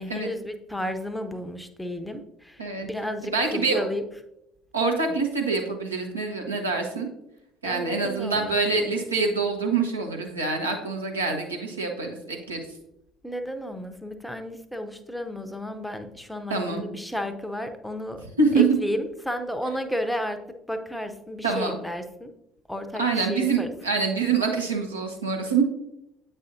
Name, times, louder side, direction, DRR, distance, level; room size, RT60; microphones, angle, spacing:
voice 1, 0.0-4.0 5.1-5.2 7.6-8.9 13.2-18.2 18.5-20.4 20.7-22.3 22.7-23.7, left 1 dB, 5° left, 7 dB, 0.7 m, -33 dB
voice 2, 3.3-3.9 4.7-7.1 7.6-12.6 16.5-16.8 18.4-18.6 21.4-21.8 23.0-25.6, right 4 dB, 85° right, 0 dB, 1.0 m, -25 dB
8.1 x 5.4 x 2.7 m, 0.82 s
figure-of-eight pair, 55°, 0 cm